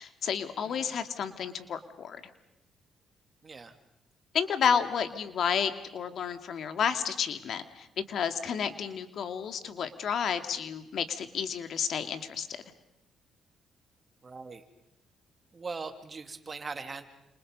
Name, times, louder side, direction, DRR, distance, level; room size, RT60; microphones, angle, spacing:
voice 1, 0.0-2.2 4.3-12.5, left 7 dB, 65° left, 9 dB, 2.3 m, -31 dB
voice 2, 0.6-1.0 3.4-3.8 14.2-14.6 15.5-17.1, right 4 dB, 35° right, 7 dB, 3.0 m, -41 dB
29.5 x 28.0 x 5.4 m, 0.86 s
cardioid pair, 90°, 0 cm